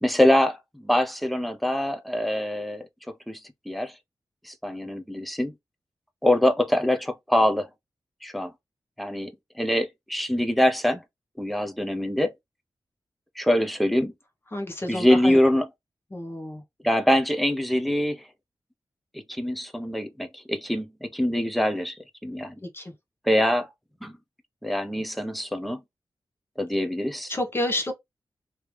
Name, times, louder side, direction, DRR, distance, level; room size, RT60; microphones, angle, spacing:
voice 1, 0.0-2.8 3.3-3.4 3.7-3.9 4.4-5.5 6.2-7.7 8.2-8.5 9.0-9.3 9.6-11.0 11.4-12.3 13.4-14.1 14.9-15.7 16.8-18.2 19.3-22.5 23.3-23.7 24.0-24.1 24.6-25.8 26.6-27.3, left 1 dB, ahead, 0.6 m, -24 dB
voice 2, 14.5-15.4 16.1-16.6 22.7-22.9 27.3-27.9, left 1 dB, 30° left, 1.0 m, -29 dB
3.2 x 2.8 x 3.2 m
wide cardioid pair, 135°, 8 cm